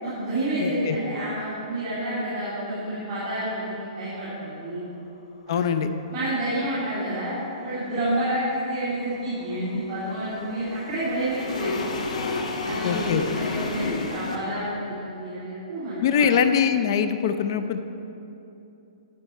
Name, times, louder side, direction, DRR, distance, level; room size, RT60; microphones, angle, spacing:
voice 1, 0.0-4.8 5.5-5.7 6.1-7.4 7.6-12.1 12.6-16.3, right 1 dB, 30° right, -12 dB, 2.6 m, -29 dB
voice 2, 0.6-1.0 5.5-5.9 12.8-13.2 16.0-17.8, left 7 dB, 40° left, 9 dB, 0.5 m, -23 dB
sound 1, 7.5-14.4, left 3 dB, 85° left, 1.3 m, -32 dB
12.0 x 8.1 x 4.4 m, 2.9 s
hypercardioid pair, 170°, 4 cm